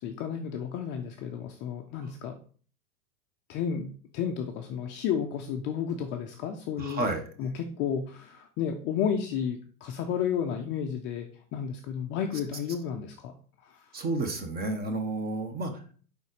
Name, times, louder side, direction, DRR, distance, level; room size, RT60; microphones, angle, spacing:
voice 1, 0.0-2.4 3.5-3.9 4.1-7.0 7.4-13.3 13.6-13.8, left 8 dB, 25° left, 4 dB, 0.4 m, -32 dB
voice 2, 6.8-7.2 13.9-15.9, right 2 dB, 20° right, 6 dB, 1.0 m, -31 dB
5.0 x 4.0 x 4.6 m, 0.42 s
hypercardioid pair, 110°, 44 cm